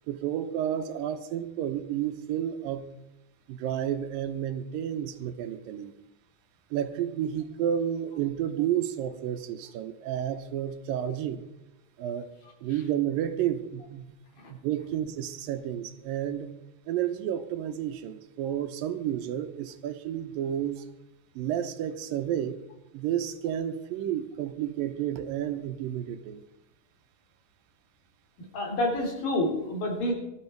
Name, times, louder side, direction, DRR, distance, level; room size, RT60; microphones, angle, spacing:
voice 1, 0.1-2.9 3.5-5.9 6.7-11.4 12.0-12.3 12.6-14.0 14.5-16.5 16.9-20.9 21.4-22.6 22.9-26.4, right 10 dB, 85° right, 9 dB, 2.7 m, -31 dB
voice 2, 28.5-30.1, left 1 dB, 75° left, 0 dB, 5.3 m, -28 dB
19.5 x 12.5 x 4.6 m, 0.93 s
omnidirectional pair, 4.0 m